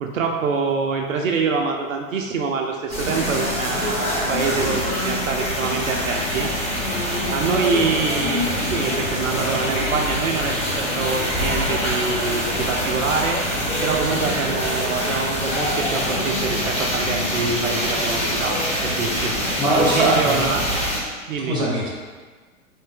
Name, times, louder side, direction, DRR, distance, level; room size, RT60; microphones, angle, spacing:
voice 1, 0.0-6.5 7.3-13.4 13.8-19.3 19.7-20.6 21.3-21.6, right 4 dB, 70° right, 2 dB, 0.5 m, -25 dB
sound 1, 2.9-21.0, equal, 15° left, 1.0 m, -24 dB
voice 2, 19.3-20.5 21.4-21.9, right 1 dB, 10° right, -4 dB, 0.7 m, -22 dB
3.4 x 2.6 x 3.6 m, 1.4 s
figure-of-eight pair, 100°, 41 cm